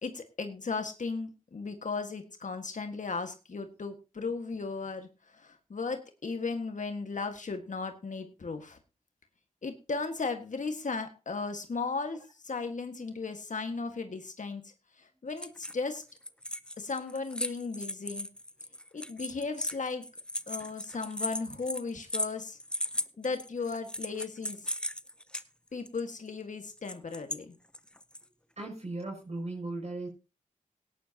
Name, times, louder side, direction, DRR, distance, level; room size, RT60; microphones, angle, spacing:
voice 1, 0.0-8.8 9.6-14.6 15.0-16.0 16.8-18.3 18.9-20.0 20.5-22.6 23.2-24.7 25.7-27.5, left 4 dB, 65° left, 6 dB, 1.7 m, -36 dB
sound 1, 15.3-15.9 16.2-25.4 25.9-26.0 26.8-27.4 27.7-28.2, left 1 dB, 5° left, 0.7 m, -37 dB
voice 2, 28.6-30.1, right 2 dB, 55° right, -2 dB, 6.1 m, -37 dB
17.5 x 10.0 x 2.9 m, 0.29 s
cardioid pair, 50°, 14 cm